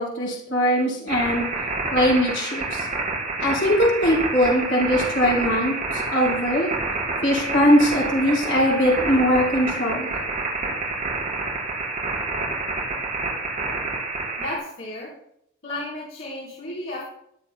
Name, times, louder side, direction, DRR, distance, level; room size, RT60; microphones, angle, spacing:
voice 1, 0.0-1.5 1.9-2.9 3.4-6.7 7.2-10.1, equal, 70° left, -4 dB, 5.2 m, -21 dB
sound 1, 1.1-14.6, right 3 dB, 40° right, 5.1 m, -28 dB
voice 2, 14.4-15.1 15.6-17.0, left 1 dB, 85° left, -7 dB, 4.3 m, -33 dB
21.0 x 9.2 x 2.3 m, 0.74 s
head